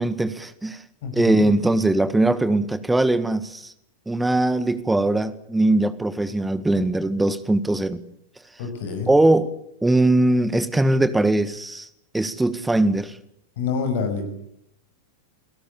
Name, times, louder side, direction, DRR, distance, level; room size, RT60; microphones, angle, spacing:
voice 1, 0.0-0.8 1.1-3.7 4.1-8.0 9.1-9.5 9.8-11.9 12.1-13.1, right 2 dB, 5° right, 13 dB, 1.7 m, -20 dB
voice 2, 1.0-1.4 8.6-9.1 13.6-14.3, left 5 dB, 55° left, 7 dB, 6.3 m, -27 dB
29.0 x 18.0 x 8.5 m, 0.75 s
figure-of-eight pair, 90°, 0 cm